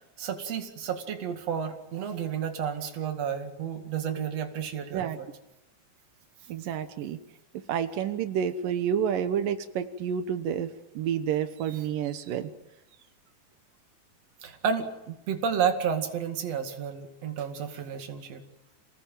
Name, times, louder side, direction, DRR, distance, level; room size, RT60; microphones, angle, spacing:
voice 1, 0.2-5.3 14.4-18.4, right 7 dB, 55° right, 5 dB, 3.2 m, -31 dB
voice 2, 6.5-7.2 7.7-10.7 11.0-12.5, right 8 dB, 85° right, 9 dB, 2.9 m, -29 dB
28.0 x 19.5 x 9.1 m, 0.92 s
omnidirectional pair, 3.8 m